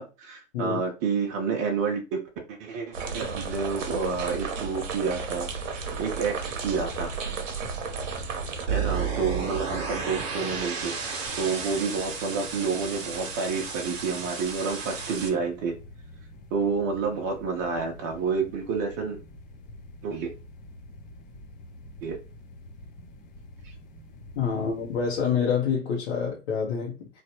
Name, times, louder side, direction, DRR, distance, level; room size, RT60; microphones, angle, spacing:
voice 1, 0.0-2.2 2.5-5.5 6.0-7.1 8.7-11.0 11.4-15.7 16.5-19.2 20.0-20.3 22.0-22.2 23.6-23.7, right 5 dB, 30° right, 0.7 m, -29 dB
sound 1, 2.9-8.7, right 4 dB, 70° right, 0.8 m, -33 dB
sound 2, 8.7-15.3, right 6 dB, 50° right, 1.0 m, -32 dB
sound 3, 11.3-25.2, left 1 dB, 20° left, 0.5 m, -47 dB
voice 2, 24.4-27.1, left 6 dB, 55° left, 0.8 m, -27 dB
3.0 x 2.4 x 2.9 m
hypercardioid pair, 110°, 39 cm